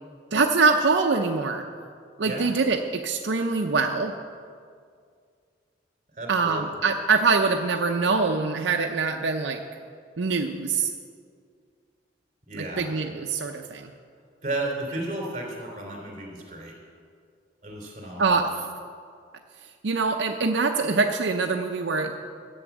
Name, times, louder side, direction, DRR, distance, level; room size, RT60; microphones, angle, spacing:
voice 1, 0.3-1.6 2.2-4.1 6.3-9.6 10.2-10.9 12.5-13.9 18.2-18.7 19.8-22.2, right 4 dB, 85° right, 3 dB, 0.6 m, -24 dB
voice 2, 6.2-6.6 12.5-12.9 14.4-16.7 17.6-18.4, right 2 dB, 40° right, 0 dB, 3.4 m, -33 dB
12.5 x 8.0 x 7.3 m, 2.2 s
head